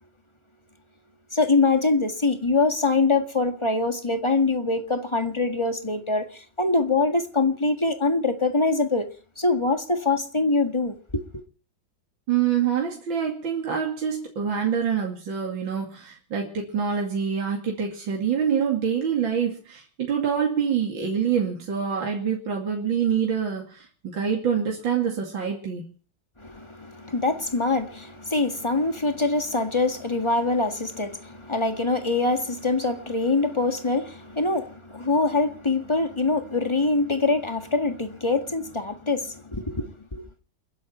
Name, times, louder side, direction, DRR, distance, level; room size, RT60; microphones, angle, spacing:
voice 1, 1.3-9.1 9.4-11.0 11.3-11.4 26.4-40.2, left 3 dB, 15° left, 1.6 m, -24 dB
voice 2, 12.3-25.8, right 7 dB, 70° right, 3.2 m, -26 dB
29.0 x 10.5 x 4.4 m
omnidirectional pair, 2.1 m